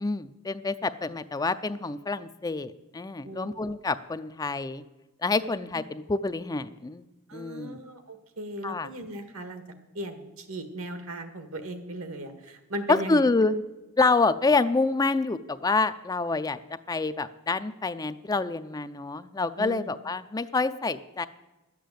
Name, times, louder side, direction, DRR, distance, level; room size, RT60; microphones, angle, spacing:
voice 1, 0.0-4.8 5.2-7.1 7.3-7.8 8.6-8.9 12.9-13.6 14.0-16.6 16.9-21.3, left 3 dB, 20° left, 12 dB, 0.4 m, -27 dB
voice 2, 7.3-9.6 9.9-13.2 19.6-19.9, right 1 dB, 75° right, 8 dB, 1.7 m, -37 dB
12.5 x 8.4 x 7.9 m, 1.1 s
head